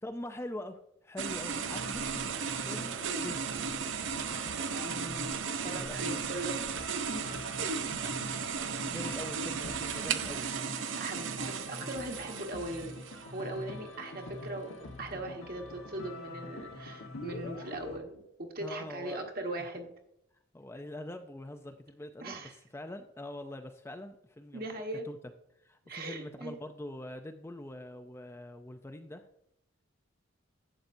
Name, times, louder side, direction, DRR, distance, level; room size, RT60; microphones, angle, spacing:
voice 1, 0.0-2.0 2.6-3.8 5.7-6.2 8.9-10.5 18.6-19.3 20.5-24.7 25.0-25.2 25.6-29.3, left 1 dB, 10° left, 6 dB, 0.4 m, -43 dB
sound 1, 1.2-13.5, right 6 dB, 65° right, 0.6 m, -35 dB
sound 2, 1.4-18.0, left 1 dB, 80° left, 1.3 m, -45 dB
voice 2, 4.8-6.8 7.1-7.6 9.8-10.1 11.0-13.0 13.3-14.7 15.0-19.9 22.2-22.5 24.5-25.0 25.8-26.6, right 2 dB, 45° right, 2 dB, 1.4 m, -40 dB
11.5 x 8.1 x 2.6 m, 0.79 s
head